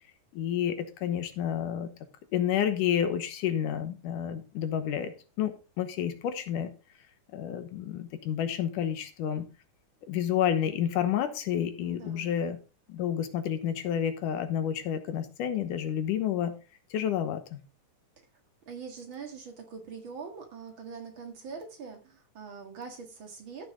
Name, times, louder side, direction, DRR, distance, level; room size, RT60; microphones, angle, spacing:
voice 1, 0.3-1.9 2.3-5.1 5.4-6.7 7.3-9.5 10.1-12.6 12.9-16.5 16.9-17.6, left 9 dB, 75° left, 9 dB, 2.5 m, -30 dB
voice 2, 11.8-12.4 18.7-23.7, right 5 dB, 45° right, 4 dB, 2.2 m, -43 dB
14.0 x 6.1 x 3.8 m, 0.32 s
omnidirectional pair, 3.8 m